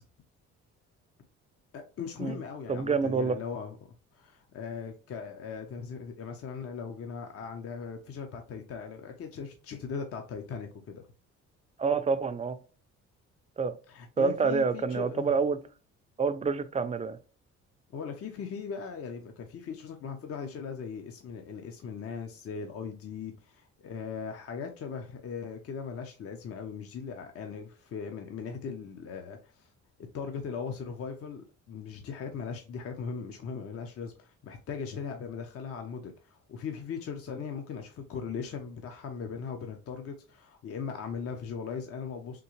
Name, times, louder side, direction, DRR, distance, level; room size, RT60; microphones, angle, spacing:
voice 1, 1.7-3.8 4.1-11.1 13.9-15.3 17.9-29.7 30.0-42.4, left 6 dB, 50° left, 0.6 m, -39 dB
voice 2, 2.7-3.4 11.8-12.6 13.6-13.8 14.2-15.6 16.2-17.2, right 5 dB, 25° right, 0.4 m, -27 dB
3.7 x 2.7 x 3.0 m
cardioid pair, 90°, 30 cm